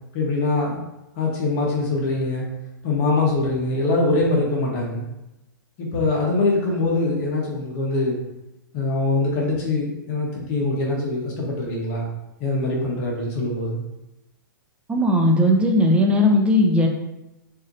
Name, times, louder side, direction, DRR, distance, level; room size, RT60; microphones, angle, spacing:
voice 1, 0.1-0.8 1.2-2.5 2.8-5.1 5.8-8.2 8.7-12.1 12.4-13.8, left 2 dB, 40° left, -2 dB, 1.2 m, -23 dB
voice 2, 14.9-16.9, left 1 dB, 10° right, 2 dB, 0.7 m, -17 dB
6.3 x 2.7 x 2.7 m, 0.94 s
hypercardioid pair, 125°, 11 cm